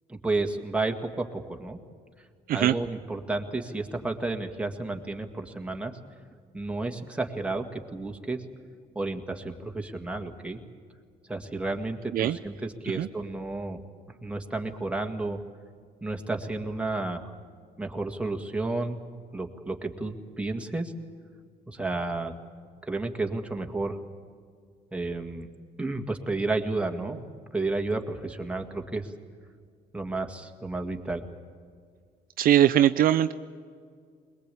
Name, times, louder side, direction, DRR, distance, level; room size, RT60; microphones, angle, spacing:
voice 1, 0.1-1.8 2.5-6.0 6.5-8.4 9.0-10.6 11.3-13.8 14.2-15.4 16.0-17.3 17.8-19.1 19.3-20.9 21.7-22.3 22.9-24.0 24.9-25.5 25.8-27.2 27.5-29.1 29.9-31.2, right 2 dB, 5° right, 3 dB, 1.9 m, -31 dB
voice 2, 32.4-33.3, right 11 dB, 60° right, 9 dB, 0.6 m, -21 dB
22.0 x 20.5 x 8.4 m, 2.1 s
cardioid pair, 110°, 17 cm